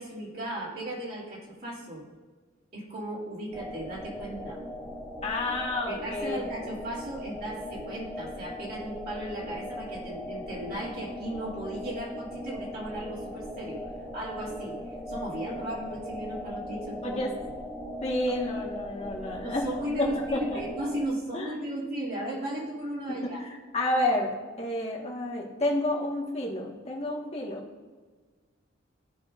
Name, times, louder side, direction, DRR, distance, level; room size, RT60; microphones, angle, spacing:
voice 1, 0.0-2.0 2.7-4.6 5.9-13.8 14.1-14.8 15.1-17.2 19.4-23.4, right 1 dB, 55° right, -7 dB, 2.8 m, -36 dB
sound 1, 3.5-21.1, left 1 dB, 10° right, 1.0 m, -39 dB
voice 2, 5.2-6.4 17.0-17.3 18.0-19.7 20.0-20.6 21.3-21.7 23.1-23.3 23.7-27.6, left 1 dB, 35° left, -2 dB, 1.6 m, -30 dB
15.0 x 6.0 x 2.6 m, 1.4 s
head